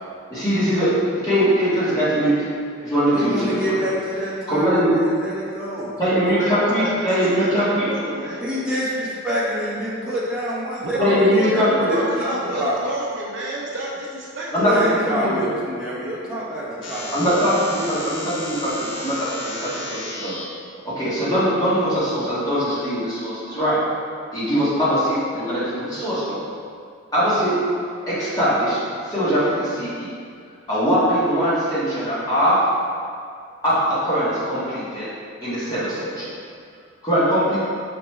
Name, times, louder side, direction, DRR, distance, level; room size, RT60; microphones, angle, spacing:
voice 1, 0.3-2.4 2.8-3.8 4.5-4.9 6.0-7.9 11.0-12.0 14.5-15.5 17.1-20.4 20.8-23.8 24.3-26.4 27.1-27.6 28.1-28.8 29.0-30.1 30.7-32.6 33.6-35.1 35.4-36.3 37.0-37.6, equal, 20° left, -11 dB, 1.4 m, -21 dB
voice 2, 3.1-5.9 8.4-11.6 11.9-12.8 14.6-17.3, equal, 5° right, -10 dB, 1.1 m, -27 dB
voice 3, 6.1-8.5 10.8-14.9, right 1 dB, 55° right, -4 dB, 0.6 m, -29 dB
sound 1, 16.8-20.4, left 1 dB, 60° left, 0.6 m, -33 dB
5.0 x 3.4 x 3.1 m, 2.3 s
head